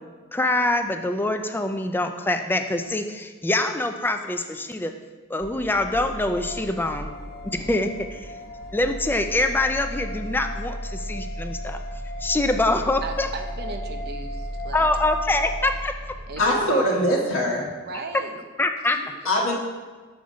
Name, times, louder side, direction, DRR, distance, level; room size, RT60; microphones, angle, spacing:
voice 1, 0.3-4.9 5.3-7.1 7.5-8.2 8.7-11.8 12.2-13.3 14.7-16.2 18.6-19.0, left 2 dB, 10° left, 7 dB, 0.3 m, -24 dB
sound 1, 5.4-16.6, equal, 15° right, 1.0 m, -35 dB
sound 2, 6.4-15.7, left 1 dB, 50° left, 0.7 m, -40 dB
voice 2, 13.0-14.9 16.3-17.1 17.8-18.4 18.9-19.1, right 3 dB, 55° right, 5 dB, 0.6 m, -37 dB
voice 3, 16.4-17.7 19.2-19.6, equal, 75° left, -2 dB, 1.1 m, -22 dB
7.0 x 3.7 x 5.1 m, 1.4 s
head